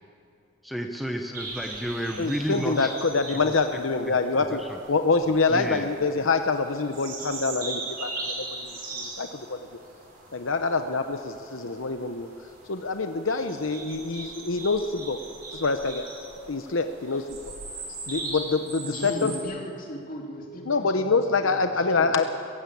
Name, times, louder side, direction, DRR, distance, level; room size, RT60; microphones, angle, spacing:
voice 1, 0.6-2.9 4.5-4.7 5.5-5.9, equal, ahead, 2 dB, 1.0 m, -31 dB
sound 1, 1.3-19.4, right 3 dB, 45° right, 5.3 m, -40 dB
voice 2, 2.2-4.6 4.9-9.6 10.3-12.3 12.7-15.2 15.5-16.0 16.5-17.2 18.1-19.3 20.7-22.3, left 4 dB, 70° left, 7 dB, 0.9 m, -26 dB
voice 3, 18.8-22.1, equal, 40° left, 0 dB, 2.9 m, -37 dB
23.0 x 15.5 x 8.5 m, 2.6 s
head